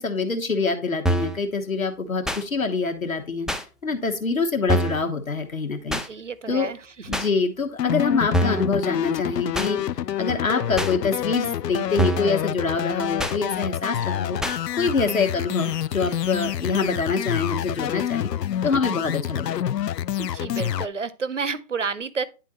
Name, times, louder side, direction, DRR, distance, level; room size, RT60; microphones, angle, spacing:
voice 1, 0.0-3.5 3.8-6.0 6.5-6.7 7.1-9.8 10.2-14.4 14.7-18.3 18.6-19.7, left 4 dB, 60° left, 1.3 m, -25 dB
sound 1, 1.1-1.4 2.3-2.4 3.5-3.6 4.7-5.0 5.9-6.1 7.1-7.3 8.3-8.7 9.5-9.7 10.8-10.9 12.0-12.3 13.2-13.4 14.4-14.6, right 1 dB, ahead, 0.3 m, -24 dB
voice 2, 5.9-7.2 20.2-22.2, right 5 dB, 50° right, 0.6 m, -31 dB
sound 2, 7.8-20.9, left 10 dB, 85° left, 0.5 m, -27 dB
9.9 x 3.8 x 4.2 m
hypercardioid pair, 175°, 48 cm